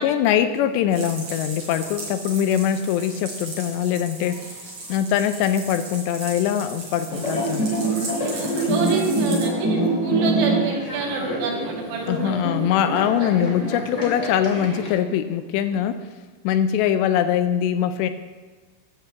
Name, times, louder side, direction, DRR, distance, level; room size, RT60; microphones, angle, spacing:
voice 1, 0.0-4.5 4.9-7.7 12.1-16.0 16.4-18.1, left 9 dB, 80° left, 10 dB, 2.6 m, -22 dB
sound 1, 0.9-9.4, right 2 dB, 45° right, 4.4 m, -37 dB
sound 2, 7.1-14.9, right 1 dB, 25° left, 2.0 m, -25 dB
voice 2, 8.2-12.4 13.2-13.3, right 5 dB, 85° right, 0 dB, 4.2 m, -28 dB
12.5 x 5.7 x 8.0 m, 1.4 s
omnidirectional pair, 5.2 m